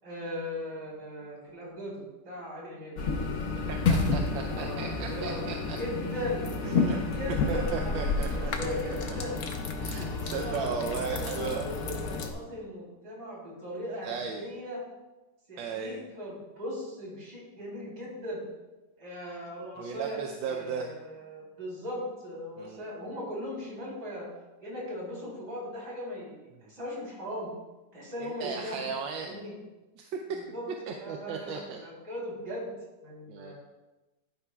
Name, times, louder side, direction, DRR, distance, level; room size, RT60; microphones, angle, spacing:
voice 1, 0.0-3.0 4.5-5.4 5.7-6.5 7.0-9.4 10.3-14.8 15.5-18.4 19.0-24.3 24.6-27.5 27.9-28.9 29.1-29.5 30.3-30.7 31.0-32.7 33.0-33.5, left 1 dB, 65° right, -5 dB, 4.2 m, -38 dB
sound 1, 3.0-12.3, left 4 dB, 55° left, 1.2 m, -30 dB
voice 2, 3.5-5.8 6.6-7.0 7.5-9.2 9.8-11.7 14.0-14.5 15.6-16.1 19.8-20.9 22.6-22.9 28.4-29.4 30.0-30.1 30.9-31.8 33.3-33.5, right 5 dB, 85° right, 3 dB, 1.4 m, -36 dB
11.5 x 9.9 x 2.3 m, 1.1 s
omnidirectional pair, 2.0 m